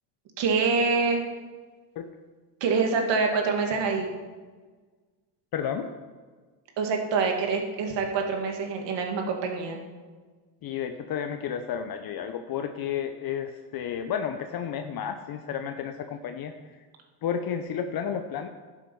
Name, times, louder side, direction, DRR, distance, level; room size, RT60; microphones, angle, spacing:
voice 1, 0.4-1.2 2.6-4.1 6.8-9.8, right 4 dB, 65° right, 2 dB, 2.1 m, -25 dB
voice 2, 5.5-5.9 10.6-16.5 17.2-18.5, left 8 dB, 50° left, 7 dB, 0.8 m, -32 dB
11.5 x 7.4 x 5.4 m, 1.4 s
cardioid pair, 100°, 46 cm